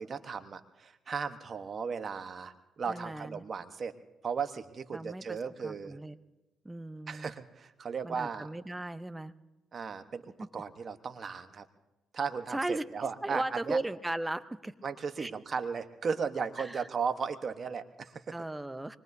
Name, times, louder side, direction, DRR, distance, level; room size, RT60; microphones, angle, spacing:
voice 1, 0.0-3.9 4.2-6.0 7.1-8.5 9.7-11.7 12.1-13.8 14.8-18.3, right 6 dB, 50° right, 9 dB, 1.1 m, -36 dB
voice 2, 2.9-3.4 4.9-5.4 5.6-6.2 6.6-7.3 8.0-9.3 10.4-10.5 12.5-12.8 13.2-14.7 15.2-15.3 16.6-16.8 18.3-19.0, right 2 dB, 15° right, 14 dB, 0.7 m, -36 dB
25.0 x 21.5 x 2.7 m, 1.0 s
supercardioid pair, 65°, 0 cm